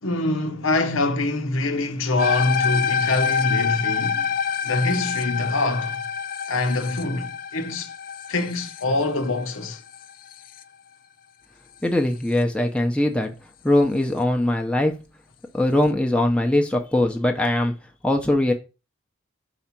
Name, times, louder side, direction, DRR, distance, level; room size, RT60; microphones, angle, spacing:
voice 1, 0.0-4.3 4.6-6.0 6.5-7.9 8.3-9.8, left 2 dB, 85° left, 0.9 m, -24 dB
sound 1, 2.2-10.6, left 7 dB, 45° left, 0.4 m, -27 dB
voice 2, 11.8-13.3 13.6-15.0 15.5-17.7 18.0-18.5, left 1 dB, 5° left, 0.7 m, -21 dB
5.0 x 4.3 x 5.8 m
head